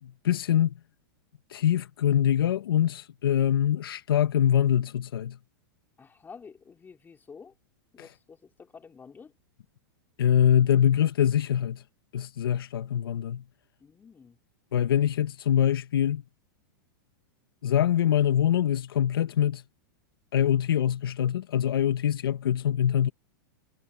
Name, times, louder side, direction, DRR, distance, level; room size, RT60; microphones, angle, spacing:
voice 1, 0.0-0.7 1.5-5.4 8.0-8.1 10.2-11.8 12.1-13.4 14.7-16.2 17.6-19.6 20.3-23.1, left 10 dB, 85° left, 1.4 m, -24 dB
voice 2, 6.0-7.5 7.9-9.3 13.8-14.4, left 5 dB, 15° left, 3.8 m, -49 dB
hypercardioid pair, 125°, 12 cm